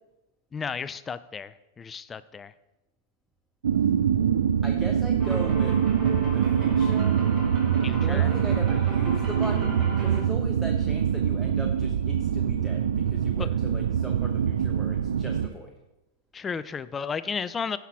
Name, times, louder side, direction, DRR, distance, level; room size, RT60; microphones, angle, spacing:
voice 1, 0.5-2.5 7.8-8.3 13.4-13.5 16.3-17.8, left 6 dB, 15° left, 14 dB, 0.3 m, -33 dB
sound 1, 3.6-15.5, right 8 dB, 90° right, 0.4 m, -24 dB
voice 2, 4.6-5.8 6.3-7.2 8.0-15.7, equal, 5° right, 2 dB, 0.8 m, -38 dB
sound 2, 5.2-10.2, right 1 dB, 30° right, 2.8 m, -36 dB
10.0 x 5.8 x 4.7 m, 0.97 s
hypercardioid pair, 135°, 0 cm